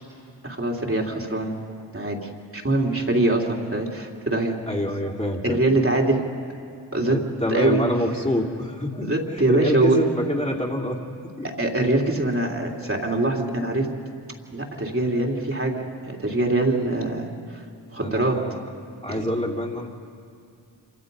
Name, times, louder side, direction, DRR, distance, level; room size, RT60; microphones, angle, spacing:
voice 1, 0.4-1.5 1.9-4.6 5.4-6.3 6.9-7.2 7.5-7.8 9.0-10.0 11.4-13.9 14.5-17.6 17.9-18.4 19.1-19.3, right 2 dB, 30° right, -1 dB, 3.1 m, -23 dB
voice 2, 4.7-5.6 7.0-9.1 9.3-11.0 11.4-11.5 12.9-13.1 18.0-18.6 19.0-19.9, left 1 dB, 15° left, -2 dB, 3.0 m, -26 dB
27.0 x 25.0 x 5.5 m, 2.3 s
cardioid pair, 40°, 44 cm